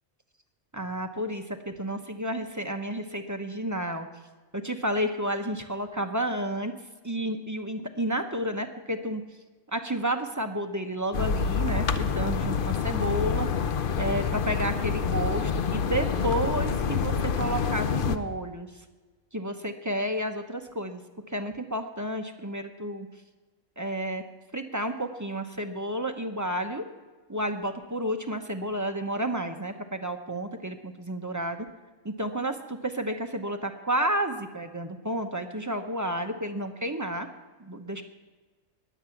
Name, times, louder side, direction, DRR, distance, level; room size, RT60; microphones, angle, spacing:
voice 1, 0.7-4.1 4.5-6.7 7.0-9.2 9.7-18.7 19.3-21.0 21.3-23.1 23.8-24.2 24.5-26.9 27.3-31.7 32.0-37.3 37.6-38.0, right 1 dB, 15° right, 5 dB, 0.7 m, -31 dB
sound 1, 11.1-18.2, left 6 dB, 55° left, 0.7 m, -27 dB
20.5 x 8.1 x 5.9 m, 1.3 s
omnidirectional pair, 1.3 m